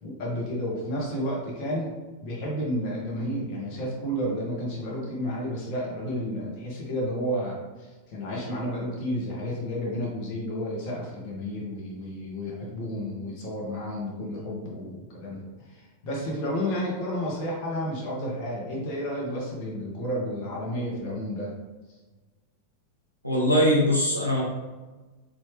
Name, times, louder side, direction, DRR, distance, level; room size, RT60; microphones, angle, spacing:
voice 1, 0.0-1.9 2.2-21.5, equal, 45° left, -4 dB, 1.5 m, -31 dB
voice 2, 23.2-24.5, equal, 90° left, -5 dB, 0.7 m, -22 dB
4.3 x 2.9 x 3.3 m, 1.2 s
figure-of-eight pair, 90°, 0 cm